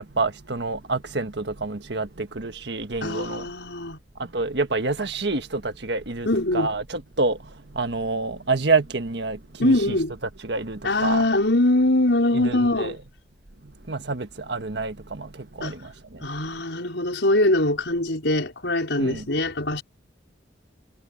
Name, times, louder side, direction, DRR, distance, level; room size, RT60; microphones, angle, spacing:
voice 1, 0.0-3.5 4.1-10.0 10.4-11.3 12.3-13.0 13.6-16.3 16.5-16.6 19.0-19.3, right 3 dB, 65° right, 1.6 m, -28 dB
voice 2, 3.0-4.0 6.3-6.7 9.6-10.1 10.8-13.0 15.6-15.8 16.2-19.8, left 1 dB, 75° left, 5.3 m, -22 dB
head